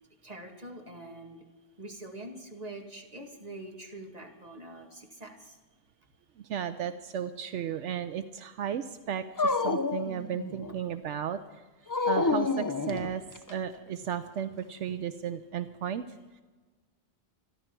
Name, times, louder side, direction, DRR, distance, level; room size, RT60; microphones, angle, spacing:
voice 1, 0.2-1.4 1.8-5.6, right 1 dB, 35° right, 1 dB, 2.3 m, -44 dB
voice 2, 6.4-11.6 12.1-16.4, right 8 dB, 80° right, 10 dB, 1.0 m, -35 dB
Dog, 9.4-10.8 11.9-13.5, left 4 dB, 25° left, 0.4 m, -29 dB
27.5 x 11.0 x 4.5 m, 1.3 s
omnidirectional pair, 1.2 m